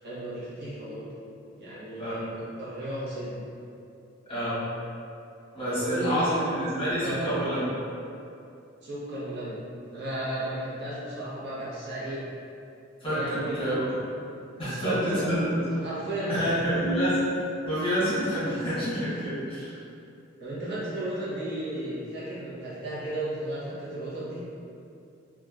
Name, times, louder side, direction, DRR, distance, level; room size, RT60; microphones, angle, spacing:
voice 1, 0.0-1.1 1.6-3.4 5.6-6.5 7.0-7.3 8.8-9.6 9.9-12.2 13.0-13.9 14.5-16.5 20.4-24.4, right 1 dB, 60° right, -9 dB, 0.7 m, -34 dB
voice 2, 4.2-4.6 5.5-7.7 13.0-13.9 14.6-15.5 16.3-17.2 17.6-19.8, equal, 25° left, -12 dB, 1.0 m, -28 dB
3.0 x 2.2 x 2.3 m, 2.6 s
head